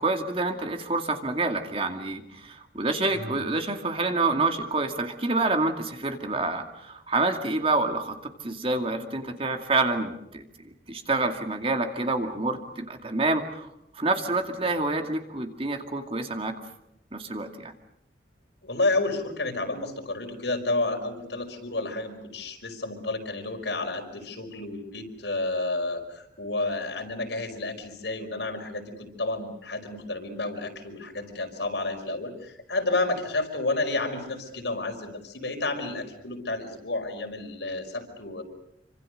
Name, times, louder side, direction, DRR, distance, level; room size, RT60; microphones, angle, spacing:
voice 1, 0.0-16.5 17.1-17.7, right 3 dB, 30° right, 5 dB, 2.4 m, -28 dB
voice 2, 18.6-38.4, left 2 dB, 75° left, 3 dB, 5.1 m, -30 dB
28.0 x 25.5 x 6.6 m, 0.79 s
head